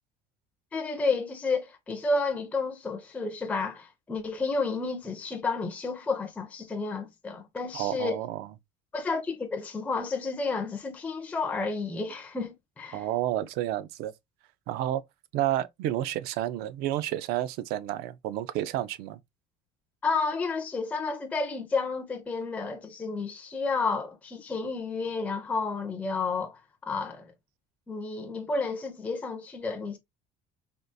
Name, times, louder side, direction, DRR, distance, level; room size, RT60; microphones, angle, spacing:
voice 1, 0.7-8.2 8.9-13.1 20.0-26.6 26.9-27.3 27.9-30.0, left 4 dB, 5° left, 0.4 m, -31 dB
voice 2, 7.7-8.5 12.9-14.1 14.7-15.0 15.3-19.2, right 13 dB, 60° right, 0.4 m, -30 dB
3.5 x 2.3 x 2.5 m
cardioid pair, 170°, 18 cm